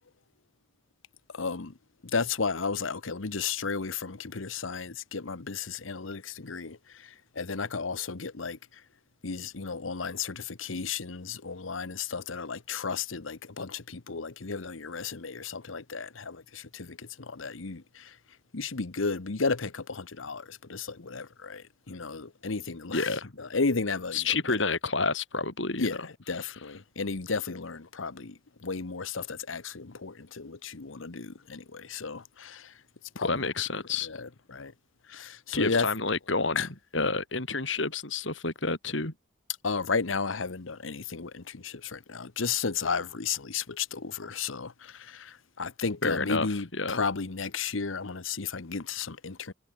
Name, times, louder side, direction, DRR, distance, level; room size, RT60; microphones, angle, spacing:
voice 1, 1.3-1.7 2.1-8.8 9.2-18.2 18.5-24.6 25.8-32.8 33.2-33.4 34.0-34.7 35.1-35.9 36.5-36.7 39.6-49.5, left 4 dB, 90° left, 1.1 m, -33 dB
voice 2, 22.9-23.3 24.1-26.0 33.2-34.1 35.5-36.6 36.9-39.1 46.0-47.0, left 3 dB, 65° left, 3.9 m, -29 dB
head